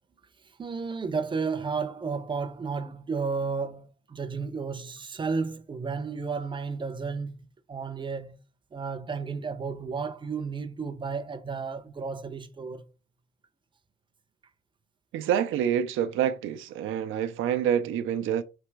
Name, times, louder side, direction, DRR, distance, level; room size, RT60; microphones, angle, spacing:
voice 1, 0.6-7.4 7.7-8.4 8.7-12.8, right 5 dB, 25° right, 0.6 m, -32 dB
voice 2, 15.1-18.4, right 9 dB, 85° right, 0.5 m, -27 dB
3.4 x 2.9 x 4.6 m
cardioid pair, 90°, 20 cm